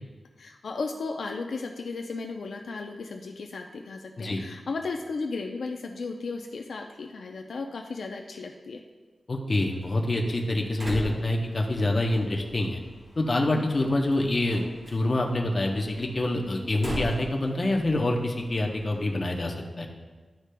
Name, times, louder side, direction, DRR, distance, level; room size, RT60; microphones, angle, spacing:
voice 1, 0.4-8.8 13.5-13.6, left 4 dB, 70° left, 2 dB, 0.4 m, -35 dB
voice 2, 9.3-12.8 13.2-19.9, left 1 dB, 30° left, 0 dB, 0.7 m, -26 dB
Slam, 9.7-19.2, equal, 40° right, 1.6 m, -41 dB
11.5 x 4.9 x 2.2 m, 1.3 s
wide cardioid pair, 170°, 0 cm